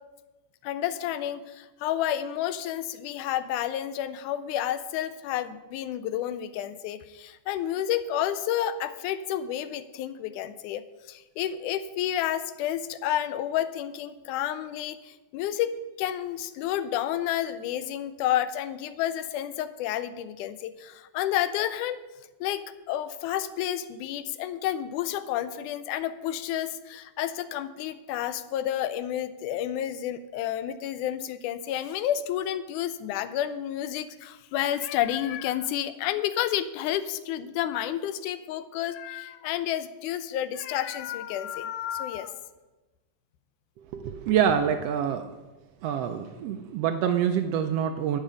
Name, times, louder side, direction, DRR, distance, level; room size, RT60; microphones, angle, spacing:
voice 1, 0.6-22.0 22.4-42.4, left 11 dB, 90° left, 13 dB, 2.1 m, -30 dB
voice 2, 43.9-45.3 45.8-48.2, right 8 dB, 90° right, 7 dB, 1.4 m, -26 dB
11.0 x 9.0 x 5.0 m, 1.1 s
omnidirectional pair, 3.5 m